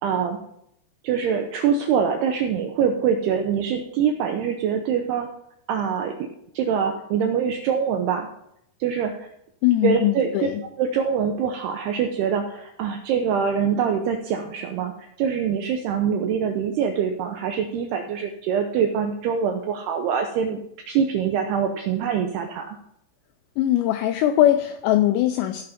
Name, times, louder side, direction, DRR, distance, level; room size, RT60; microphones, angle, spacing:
voice 1, 0.0-0.4 1.0-5.3 5.7-6.1 6.5-8.3 8.8-9.3 9.8-10.3 10.8-14.9 15.2-20.6 20.9-22.8, right 7 dB, 85° right, 4 dB, 2.3 m, -24 dB
voice 2, 9.6-10.6 23.6-25.6, left 13 dB, 90° left, 9 dB, 2.5 m, -20 dB
16.0 x 5.7 x 5.1 m, 0.76 s
omnidirectional pair, 5.7 m